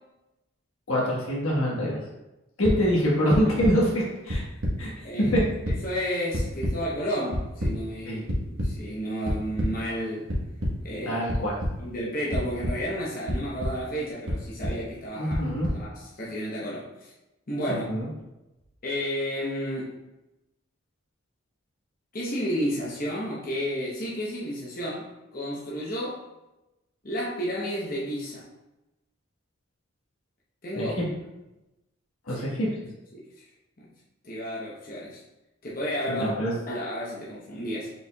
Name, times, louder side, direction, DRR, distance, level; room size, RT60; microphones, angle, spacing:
voice 1, 0.9-2.0 2.6-4.4 4.8-4.9 5.2-5.4 8.1-8.2 11.0-11.5 15.2-15.7 17.7-18.1 30.7-31.1 32.3-32.7 36.1-36.5, equal, 90° left, -4 dB, 1.4 m, -25 dB
sound 1, 2.6-2.7 3.3-3.7 4.3-4.7 5.1-5.8 6.3-6.7 7.3-7.7 8.3-8.7 9.2-9.7 10.3-10.7 11.3-11.7 12.3-12.7 13.3-13.7 14.3-14.7 15.3-15.7, equal, 75° right, 1.2 m, -26 dB
voice 2, 5.8-10.3 10.8-11.2 11.8-17.1 17.5-17.8 18.8-20.0 22.1-26.2 27.0-28.5 30.6-30.9 32.3-32.6 33.1-33.3 33.8-33.9 34.2-35.2 35.6-37.9, equal, 40° left, -5 dB, 0.8 m, -32 dB
5.3 x 4.2 x 2.3 m, 0.97 s
head